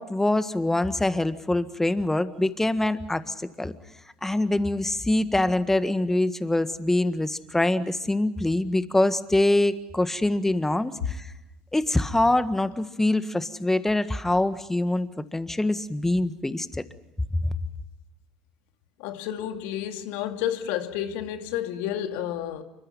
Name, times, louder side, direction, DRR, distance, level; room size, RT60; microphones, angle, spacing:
voice 1, 0.0-3.7 4.2-11.3 11.7-16.8 17.3-17.5, left 1 dB, 10° left, 1.6 m, -24 dB
voice 2, 19.0-22.6, left 11 dB, 60° left, 2.5 m, -30 dB
29.0 x 25.0 x 5.6 m
hypercardioid pair, 70°, 4 cm